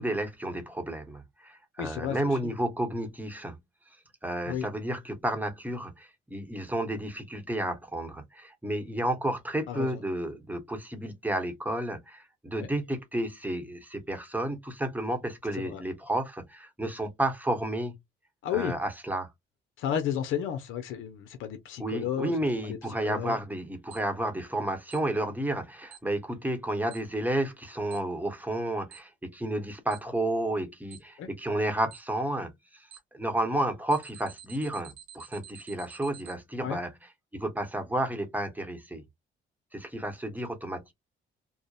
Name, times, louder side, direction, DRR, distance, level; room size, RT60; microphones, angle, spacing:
voice 1, 0.0-3.6 4.2-18.0 18.5-19.3 21.8-32.9 33.1-36.9 37.3-39.0 39.7-40.9, right 1 dB, 10° right, 0.9 m, -31 dB
voice 2, 1.8-2.3 4.5-4.7 9.7-9.9 12.6-12.7 15.6-15.8 18.4-18.8 19.8-22.3 22.6-22.8 23.0-23.4 31.2-31.3 36.6-36.8, left 9 dB, 85° left, 0.6 m, -32 dB
Alarm, 23.9-24.0 24.9-25.0 25.9-26.0 26.9-27.0 27.9-28.0 28.9-29.0 29.9-30.0 30.9-31.0 31.9-32.0 32.9-33.0 33.9-36.3, right 10 dB, 80° right, 0.7 m, -48 dB
2.7 x 2.1 x 2.3 m
cardioid pair, 90°, 20 cm